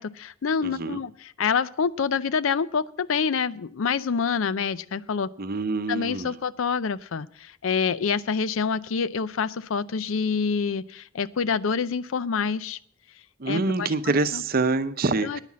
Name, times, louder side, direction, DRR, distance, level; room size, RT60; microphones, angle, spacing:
voice 1, 0.0-5.3 5.9-12.8 13.5-14.4 15.2-15.4, left 6 dB, 65° left, 18 dB, 0.5 m, -27 dB
voice 2, 0.6-1.0 5.4-6.4 13.4-15.4, right 3 dB, 45° right, 11 dB, 0.7 m, -26 dB
9.9 x 9.7 x 7.4 m, 0.62 s
head